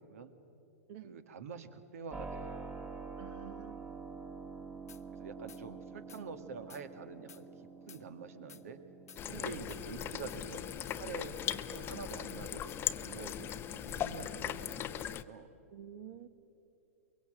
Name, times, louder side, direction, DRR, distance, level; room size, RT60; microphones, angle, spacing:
voice 1, 1.0-2.7 5.1-7.5 7.9-8.8 9.4-15.5, right 5 dB, 70° right, 10 dB, 1.8 m, -47 dB
Keyboard (musical), 2.1-14.8, right 4 dB, 15° right, 1.5 m, -49 dB
voice 2, 3.2-4.3 9.3-9.5 15.7-16.3, right 9 dB, 50° right, 11 dB, 1.4 m, -50 dB
sound 1, 4.9-5.0 5.5-5.6 6.1-6.2 6.7-6.8 7.3-7.4 7.9-8.0 8.5-8.6 9.1-9.2 9.7-9.8 10.3-10.4 10.9-11.0 11.5-11.6 12.1-12.2 12.7-12.8 13.3-13.4 13.9-14.0, left 8 dB, 80° left, 0.8 m, -55 dB
sound 2, 9.2-15.2, left 10 dB, 25° left, 0.7 m, -39 dB
23.0 x 23.0 x 7.6 m, 2.8 s
hypercardioid pair, 110°, 8 cm